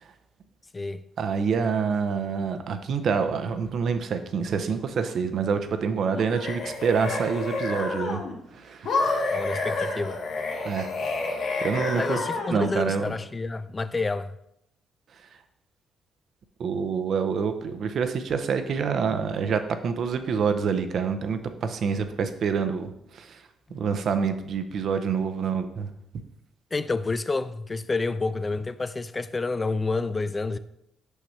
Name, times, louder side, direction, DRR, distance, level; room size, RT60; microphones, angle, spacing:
voice 1, 1.2-8.2 8.5-9.0 10.6-10.9 11.6-12.2 12.5-13.1 16.6-23.4 23.7-25.9, right 6 dB, 60° right, 0.6 m, -27 dB
sound 1, 6.1-8.3 8.8-12.7, left 3 dB, 70° left, 1.3 m, -29 dB
voice 2, 9.3-10.2 12.0-14.4 26.7-30.6, left 3 dB, 25° left, 0.4 m, -29 dB
6.4 x 5.8 x 3.2 m
cardioid pair, 90°, 0 cm